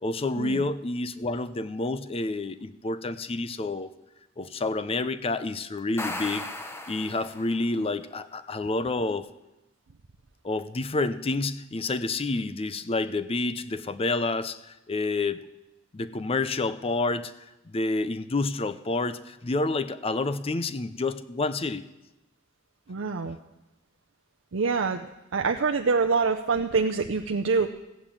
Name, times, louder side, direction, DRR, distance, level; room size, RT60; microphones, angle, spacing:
voice 1, 0.0-3.9 4.4-6.5 6.9-9.3 10.4-15.5 15.9-17.3 17.7-21.8, left 3 dB, 30° left, 14 dB, 0.5 m, -29 dB
sound 1, 5.8-7.7, left 2 dB, 15° left, 0.9 m, -36 dB
voice 2, 22.9-23.4 24.5-25.0 25.3-27.7, right 4 dB, 75° right, 4 dB, 0.6 m, -25 dB
15.0 x 8.8 x 7.3 m, 0.98 s
head